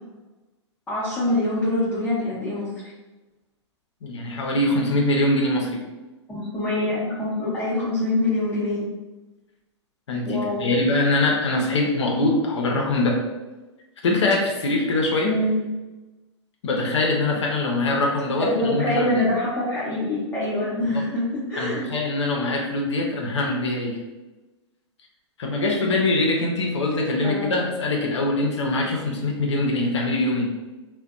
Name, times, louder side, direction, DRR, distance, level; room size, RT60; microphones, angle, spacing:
voice 1, 0.9-2.7 6.3-8.9 10.2-10.7 15.2-15.6 18.4-21.9 27.2-27.6, left 1 dB, 10° left, -10 dB, 0.7 m, -25 dB
voice 2, 4.0-5.8 10.1-13.2 14.0-15.4 16.6-19.2 20.9-21.0 21.6-24.0 25.4-30.5, left 2 dB, 75° left, 0 dB, 0.5 m, -23 dB
2.5 x 2.1 x 2.3 m, 1.1 s
hypercardioid pair, 115°, 15 cm